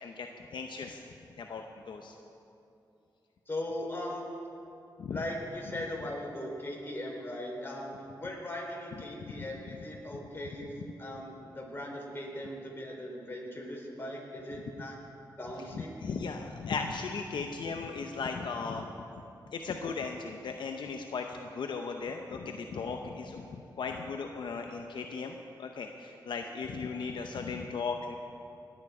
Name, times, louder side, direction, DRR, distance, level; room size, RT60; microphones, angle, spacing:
voice 1, 0.0-1.0 1.4-2.1 5.0-5.2 9.3-9.5 15.7-18.9 19.5-28.1, left 5 dB, 75° left, 4 dB, 0.7 m, -37 dB
voice 2, 3.5-4.2 5.1-7.9 8.2-15.0 15.4-15.9, left 1 dB, 30° left, -1 dB, 3.8 m, -39 dB
18.5 x 9.2 x 4.9 m, 2.8 s
cardioid pair, 60°, 8 cm